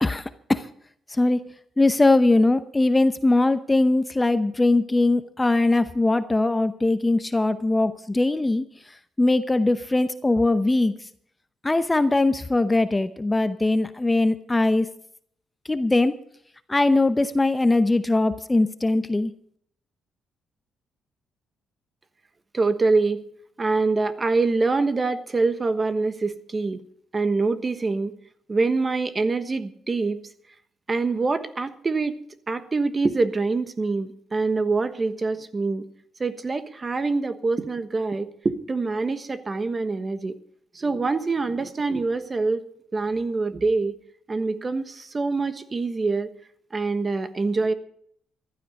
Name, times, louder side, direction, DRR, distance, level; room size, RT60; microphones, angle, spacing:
voice 1, 0.0-0.7 1.1-1.4 1.8-8.6 9.2-10.9 11.6-14.9 15.7-16.1 16.7-19.3, left 2 dB, 15° left, 12 dB, 0.7 m, -21 dB
voice 2, 22.5-23.2 23.6-26.8 27.1-28.1 28.5-30.2 30.9-32.2 32.5-35.9 36.2-40.3 40.7-42.6 42.9-43.9 44.3-46.3 46.7-47.7, right 3 dB, 30° right, 11 dB, 1.2 m, -25 dB
14.5 x 12.0 x 5.3 m, 0.66 s
cardioid pair, 90°, 0 cm